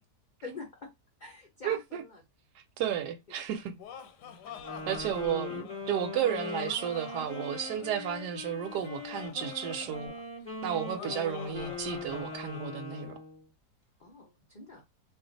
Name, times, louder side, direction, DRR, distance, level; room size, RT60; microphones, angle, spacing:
voice 1, 0.4-0.9 1.2-2.2 10.9-11.0 14.0-14.8, left 3 dB, 60° left, 0.5 m, -46 dB
voice 2, 1.6-2.0 2.8-3.7 4.9-10.1 10.6-13.2, right 9 dB, 80° right, 1.2 m, -33 dB
Laughter, 3.5-12.6, left 9 dB, 90° left, 1.2 m, -47 dB
Wind instrument woodwind instrument, 4.5-13.5, left 3 dB, 5° left, 1.2 m, -41 dB
2.5 x 2.4 x 3.8 m
omnidirectional pair, 1.8 m